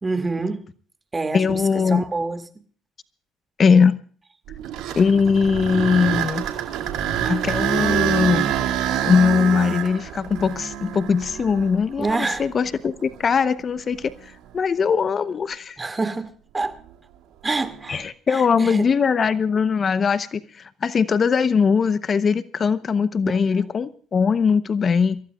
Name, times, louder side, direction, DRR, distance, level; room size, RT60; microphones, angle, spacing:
voice 1, 0.0-0.6 1.1-1.4 1.9-2.4 12.0-12.4 15.8-16.7 17.4-18.0 18.6-18.9 23.5-23.6, right 3 dB, 25° right, 2.3 m, -26 dB
voice 2, 1.3-2.0 3.6-4.0 4.9-6.5 7.2-8.5 9.0-15.8 17.9-25.2, left 5 dB, 40° left, 0.8 m, -20 dB
sound 1, 4.5-12.5 13.1-13.2 13.9-14.1 17.6-18.0, right 10 dB, 75° right, 2.3 m, -26 dB
27.5 x 15.0 x 2.4 m
supercardioid pair, 75°, 0 cm